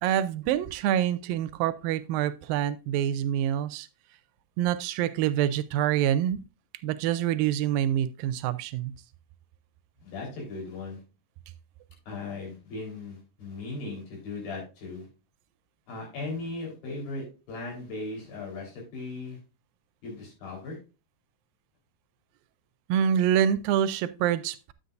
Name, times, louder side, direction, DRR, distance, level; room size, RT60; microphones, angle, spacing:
voice 1, 0.0-3.9 4.6-6.4 6.8-8.9 22.9-24.7, right 10 dB, 85° right, 2.3 m, -26 dB
voice 2, 10.0-11.0 12.1-15.1 15.9-19.4 20.0-20.8, left 3 dB, 85° left, 5.8 m, -37 dB
10.0 x 8.2 x 2.5 m
omnidirectional pair, 4.1 m